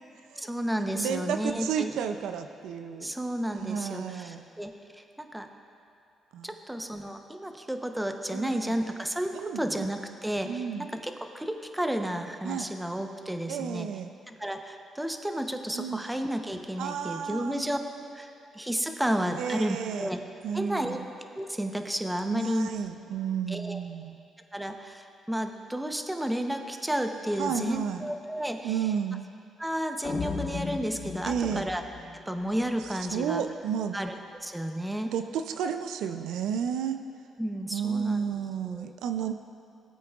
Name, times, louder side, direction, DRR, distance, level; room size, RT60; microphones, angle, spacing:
voice 1, 0.4-2.0 3.0-5.5 6.4-13.9 14.3-20.2 20.5-21.0 21.3-22.7 23.5-23.8 24.5-28.9 29.6-31.8 32.1-33.4 33.9-35.1 37.4-38.2 38.6-38.9, right 1 dB, 5° right, 5 dB, 0.7 m, -32 dB
voice 2, 0.9-3.1 3.6-4.5 6.3-6.5 8.3-8.7 9.3-9.9 10.5-10.9 12.4-12.7 13.5-14.1 15.7-16.0 16.8-17.6 19.4-20.1 20.4-21.0 22.3-24.2 27.4-28.1 28.6-29.2 31.2-31.7 33.1-34.0 35.1-37.0 37.7-39.3, right 7 dB, 85° right, 8 dB, 0.4 m, -32 dB
sound 1, 30.0-33.1, left 4 dB, 55° left, 0.9 m, -36 dB
18.0 x 8.3 x 2.4 m, 2.5 s
cardioid pair, 90°, 0 cm